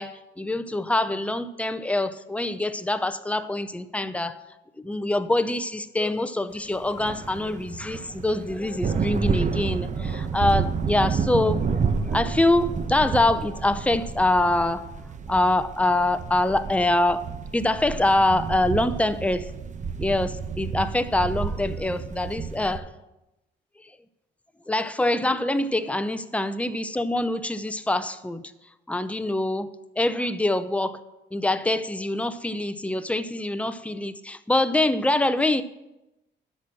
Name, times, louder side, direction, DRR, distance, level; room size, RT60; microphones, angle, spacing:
voice 1, 0.0-4.4 4.8-11.7 11.9-14.8 15.3-17.2 17.5-19.5 20.0-22.9 24.7-28.5 28.9-31.0 31.3-35.6, left 2 dB, 5° left, 0.6 m, -24 dB
sound 1, 6.8-22.8, right 5 dB, 40° right, 0.9 m, -30 dB
12.5 x 4.4 x 7.5 m
cardioid pair, 90°, 20 cm